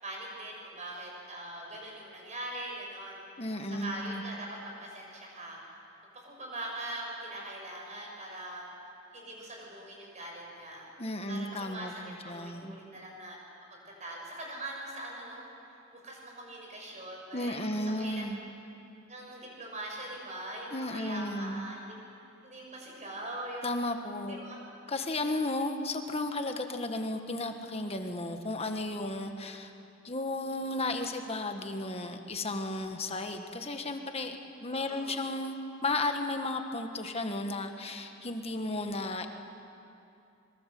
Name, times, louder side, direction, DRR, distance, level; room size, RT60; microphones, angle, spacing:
voice 1, 0.0-3.2 3.7-5.6 6.1-8.6 9.1-10.9 11.3-13.4 13.7-17.7 18.0-18.4 19.1-22.0 22.4-23.7 24.3-24.6 34.7-35.3, right 1 dB, 35° right, -1 dB, 6.5 m, -42 dB
voice 2, 3.4-4.2 11.0-12.8 17.3-18.4 20.7-21.6 23.6-24.4 24.9-29.7 30.0-35.6 35.8-39.3, left 2 dB, 30° left, 6 dB, 1.6 m, -34 dB
25.0 x 23.0 x 7.8 m, 2.7 s
head